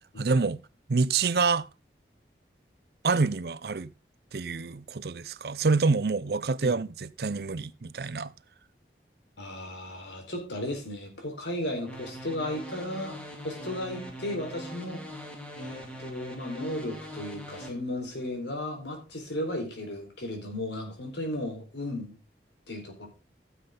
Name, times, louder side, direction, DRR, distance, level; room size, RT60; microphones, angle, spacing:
voice 1, 0.2-0.6 0.9-1.7 3.0-3.9 4.3-8.3, right 4 dB, 60° right, 0.6 m, -27 dB
voice 2, 9.4-15.1 15.5-22.2 22.7-23.1, left 1 dB, 85° left, 4.3 m, -35 dB
sound 1, 11.9-17.7, equal, 5° left, 2.3 m, -42 dB
15.5 x 7.5 x 3.8 m
head